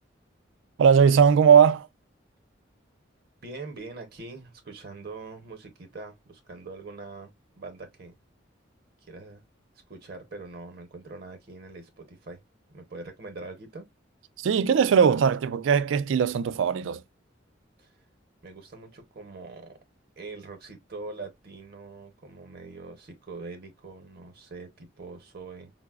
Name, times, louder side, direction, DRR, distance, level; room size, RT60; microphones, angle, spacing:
voice 1, 0.8-1.9 14.4-17.0, right 7 dB, 75° right, 0.3 m, -19 dB
voice 2, 3.4-8.1 9.0-9.4 9.9-12.4 12.7-13.9 17.8-17.9 18.4-19.8 20.2-25.7, right 3 dB, 50° right, 0.7 m, -43 dB
4.6 x 2.0 x 2.3 m
head